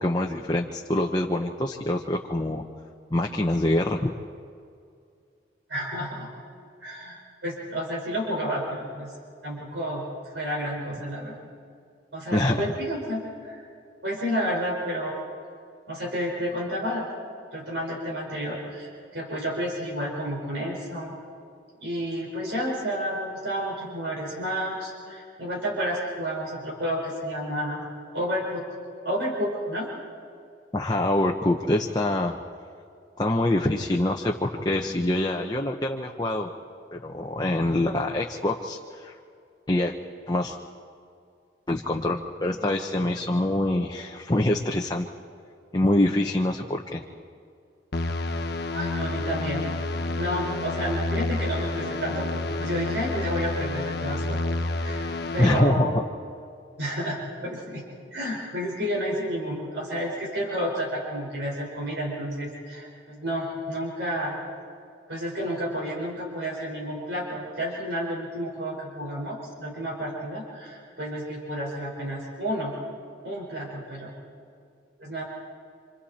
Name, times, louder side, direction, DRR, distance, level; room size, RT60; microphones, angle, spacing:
voice 1, 0.0-2.6 3.1-4.1 12.3-12.6 30.7-32.4 33.2-36.5 36.9-39.1 39.7-39.9 40.3-40.6 41.7-45.1 45.7-47.0 55.4-56.0, left 1 dB, 20° left, 1 dB, 0.9 m, -25 dB
voice 2, 5.7-6.3 6.8-9.1 9.4-10.0 10.3-11.4 12.1-13.6 14.0-15.2 15.9-17.1 17.5-21.1 21.8-28.6 29.0-29.9 48.7-49.7 50.2-54.5 54.7-55.9 56.8-57.8 58.1-64.3 65.1-72.7 73.2-74.1 75.0-75.2, equal, 65° right, -3 dB, 5.1 m, -31 dB
sound 1, 47.9-55.6, left 2 dB, 60° left, 1.0 m, -29 dB
28.5 x 27.0 x 4.3 m, 2.4 s
head